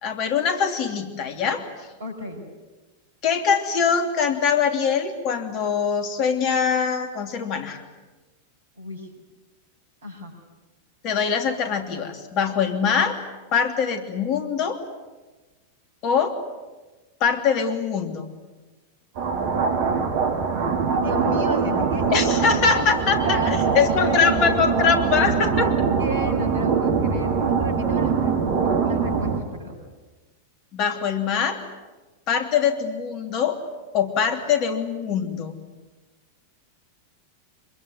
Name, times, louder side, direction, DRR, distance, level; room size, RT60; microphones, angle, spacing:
voice 1, 0.0-1.6 3.2-7.8 11.0-13.2 13.5-14.8 16.0-16.3 17.2-18.3 22.1-25.7 30.7-31.6 32.3-33.6 33.9-35.6, left 6 dB, 40° left, 7 dB, 2.9 m, -23 dB
voice 2, 2.0-2.4 8.8-9.1 10.0-10.3 20.9-22.1 22.7-22.9 23.2-24.9 26.0-28.5 28.8-29.8, equal, 70° right, 5 dB, 6.4 m, -33 dB
sound 1, 19.2-29.4, right 5 dB, 50° right, 3.1 m, -23 dB
25.5 x 22.0 x 9.7 m, 1.2 s
figure-of-eight pair, 90°, 0 cm